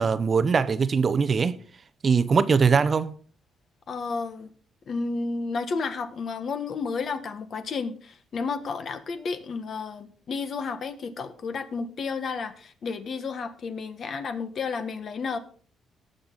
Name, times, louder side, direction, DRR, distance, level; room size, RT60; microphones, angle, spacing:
voice 1, 0.0-1.5 2.0-3.1, right 5 dB, 35° right, 0.6 m, -21 dB
voice 2, 3.9-4.5 4.9-15.4, left 4 dB, 50° left, 1.4 m, -32 dB
18.5 x 6.6 x 3.9 m
cardioid pair, 120°, 0 cm